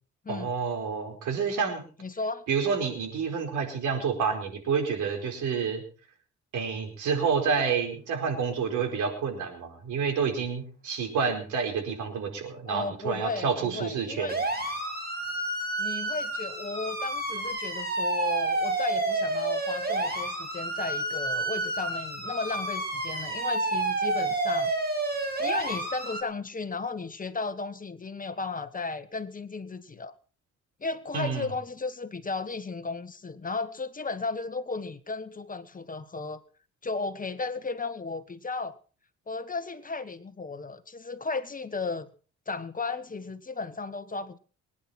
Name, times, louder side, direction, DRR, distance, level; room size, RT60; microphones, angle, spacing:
voice 1, 0.3-1.8 2.5-5.8 6.5-14.3 31.1-31.5, right 6 dB, 80° right, 4.7 m, -29 dB
voice 2, 2.0-2.4 12.7-14.4 15.8-24.7 25.4-30.1 30.8-36.4 36.8-38.7 39.3-42.1 42.5-44.4, left 3 dB, 25° left, 1.5 m, -34 dB
sound 1, 14.3-26.2, right 2 dB, 30° right, 5.4 m, -30 dB
24.0 x 10.0 x 4.4 m
cardioid pair, 90°, 30 cm